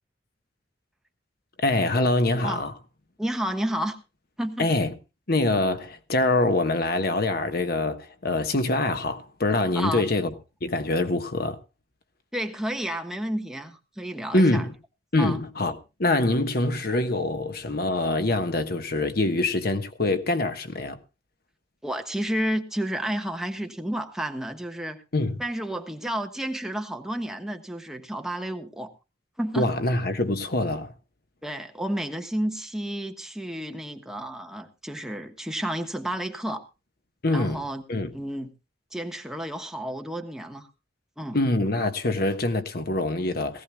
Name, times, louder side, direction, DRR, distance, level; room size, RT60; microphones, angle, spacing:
voice 1, 1.6-2.7 4.6-4.9 5.3-10.3 10.6-11.6 14.3-14.7 15.1-15.7 16.0-21.0 25.1-25.4 29.5-30.9 37.2-37.6 37.9-38.1 41.3-43.6, left 2 dB, 55° left, 1.3 m, -24 dB
voice 2, 3.2-4.0 4.4-4.7 9.7-10.1 12.3-14.7 15.2-15.4 21.8-25.0 25.4-28.9 29.4-29.7 31.4-36.6 37.3-37.8 38.1-38.5 38.9-40.7 41.2-41.4, right 1 dB, 5° right, 1.2 m, -31 dB
19.0 x 16.0 x 2.3 m
head